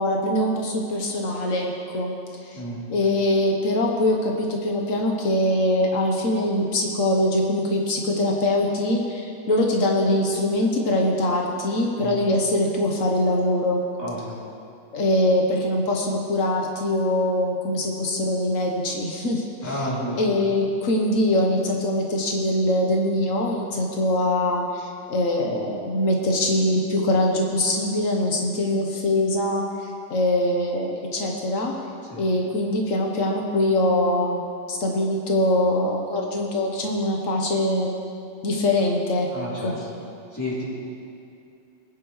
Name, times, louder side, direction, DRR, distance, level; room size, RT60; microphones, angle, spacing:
voice 1, 0.0-2.1 2.4-2.6 2.9-13.8 14.9-19.9 20.2-31.7 32.2-34.4 34.7-37.9 38.4-39.3 39.6-39.9, left 1 dB, 90° left, 0 dB, 1.5 m, -23 dB
voice 2, 2.5-2.9 12.0-12.2 14.0-14.4 19.6-20.2 32.0-32.2 39.3-39.9 40.3-40.7, equal, 15° left, -9 dB, 3.5 m, -31 dB
20.0 x 10.0 x 3.2 m, 2.5 s
omnidirectional pair, 1.3 m